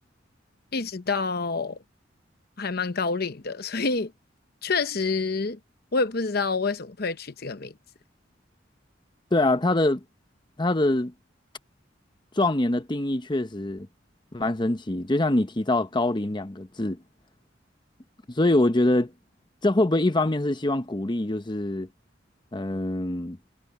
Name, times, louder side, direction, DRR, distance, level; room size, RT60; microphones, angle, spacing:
voice 1, 0.7-1.8 2.6-4.1 4.6-5.6 5.9-7.7, left 4 dB, 55° left, 0.9 m, -27 dB
voice 2, 9.3-10.0 10.6-11.1 12.4-13.9 14.3-17.0 18.4-19.1 19.6-21.9 22.5-23.4, left 2 dB, 25° left, 0.9 m, -24 dB
head